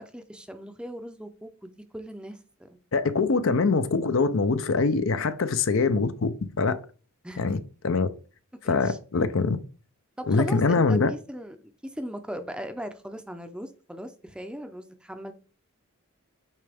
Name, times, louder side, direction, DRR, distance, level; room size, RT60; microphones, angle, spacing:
voice 1, 0.0-2.8 7.2-7.4 8.6-9.0 10.2-15.3, equal, 5° right, 0.5 m, -38 dB
voice 2, 2.9-6.8 7.4-8.1 8.7-9.6 10.3-11.1, left 4 dB, 65° left, 0.6 m, -24 dB
8.6 x 3.3 x 3.4 m
head